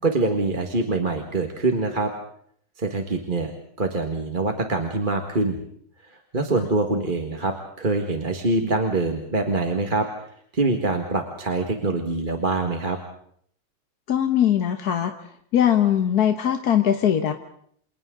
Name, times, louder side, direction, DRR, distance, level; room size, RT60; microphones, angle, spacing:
voice 1, 0.0-2.1 2.8-3.5 3.8-5.6 6.1-10.1 10.5-13.0, right 2 dB, 30° right, 3 dB, 1.9 m, -24 dB
voice 2, 14.1-15.1 15.5-17.3, left 10 dB, 75° left, 6 dB, 1.7 m, -20 dB
29.0 x 28.0 x 3.9 m, 0.65 s
omnidirectional pair, 1.6 m